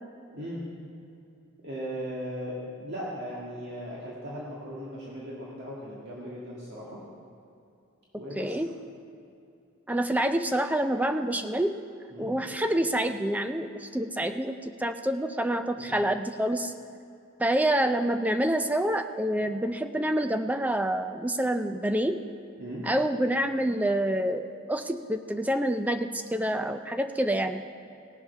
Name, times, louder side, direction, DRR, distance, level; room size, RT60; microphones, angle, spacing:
voice 1, 0.3-0.6 1.6-7.0 8.2-8.6 12.1-12.3 15.8-16.0 22.6-22.9, equal, 50° right, -6 dB, 1.8 m, -38 dB
voice 2, 8.4-8.7 9.9-11.8 12.2-16.7 17.4-22.2 22.8-27.6, right 1 dB, 5° right, 8 dB, 0.4 m, -27 dB
18.0 x 7.5 x 5.6 m, 2.6 s
head